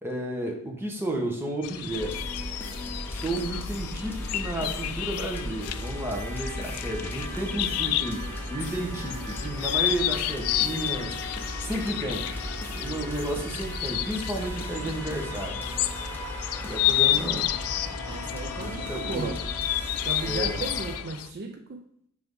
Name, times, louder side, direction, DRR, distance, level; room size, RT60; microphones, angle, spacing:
voice 1, 0.0-2.2 3.1-11.2 11.6-12.3 12.7-15.6 16.6-17.5 18.6-19.4 20.2-20.6, right 1 dB, 10° right, 1.0 m, -32 dB
sound 1, 1.6-21.3, left 14 dB, 75° left, 0.3 m, -31 dB
sound 2, 1.9-21.0, equal, 10° left, 0.8 m, -36 dB
sound 3, 7.6-13.4, left 6 dB, 60° left, 0.7 m, -48 dB
voice 2, 18.1-19.5 20.0-21.8, right 4 dB, 45° right, 0.4 m, -35 dB
5.8 x 3.5 x 5.3 m
head